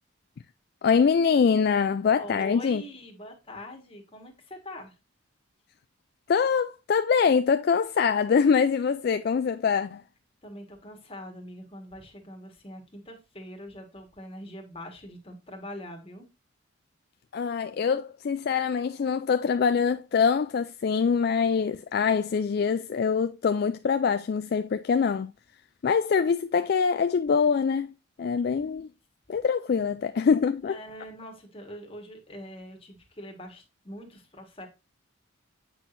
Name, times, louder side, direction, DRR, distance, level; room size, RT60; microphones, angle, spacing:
voice 1, 0.8-2.8 6.3-10.0 17.3-25.3 25.8-27.9 28.2-28.9 29.3-30.8, left 6 dB, 50° left, 0.3 m, -24 dB
voice 2, 2.2-4.9 10.4-16.3 29.7-30.4 30.7-34.7, equal, 30° left, 1.6 m, -43 dB
8.0 x 5.9 x 2.6 m
head